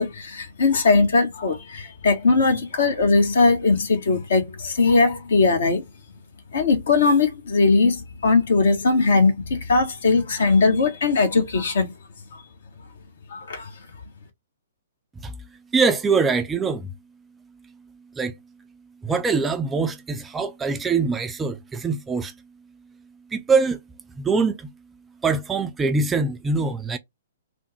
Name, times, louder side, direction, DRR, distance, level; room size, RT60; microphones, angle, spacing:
voice 1, 0.0-5.8 6.5-11.9 13.3-13.7, left 3 dB, 60° left, 0.9 m, -20 dB
voice 2, 15.7-16.9 18.2-18.3 19.0-22.3 23.3-23.8 24.2-24.7 25.2-27.0, right 4 dB, 10° right, 0.4 m, -23 dB
3.4 x 2.0 x 3.0 m
figure-of-eight pair, 120°, 0 cm